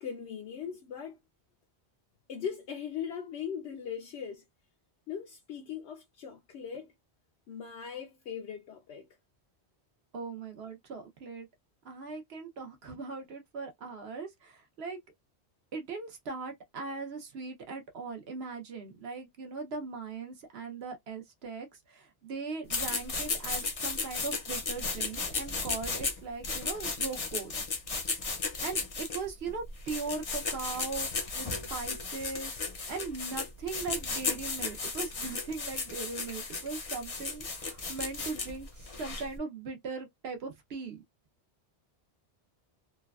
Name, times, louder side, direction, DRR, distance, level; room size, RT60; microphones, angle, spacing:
voice 1, 0.0-1.2 2.3-4.4 5.1-6.9 7.5-9.1, left 7 dB, 75° left, 0.8 m, -39 dB
voice 2, 10.1-11.5 11.8-15.0 15.7-27.5 28.6-41.0, right 4 dB, 65° right, 1.0 m, -39 dB
sound 1, 22.7-39.4, left 4 dB, 40° left, 0.6 m, -35 dB
3.2 x 2.2 x 2.3 m
omnidirectional pair, 1.1 m